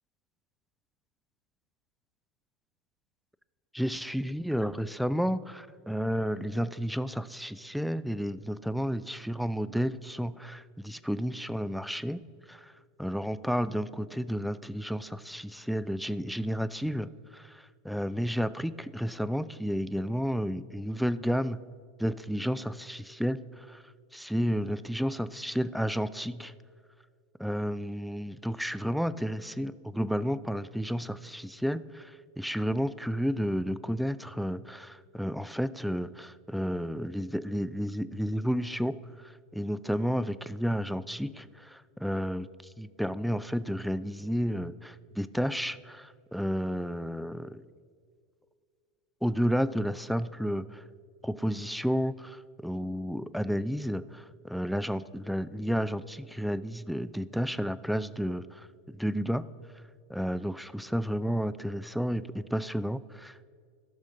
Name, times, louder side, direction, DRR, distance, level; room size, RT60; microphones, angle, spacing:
voice 1, 3.7-12.2 12.5-12.7 13.0-21.6 22.0-23.8 24.1-26.5 27.4-32.1 32.4-39.0 39.5-42.5 42.8-47.6 49.2-50.8 51.2-59.5 60.1-63.4, equal, ahead, 16 dB, 0.3 m, -31 dB
14.0 x 6.3 x 3.8 m, 2.1 s
hypercardioid pair, 85°, 0 cm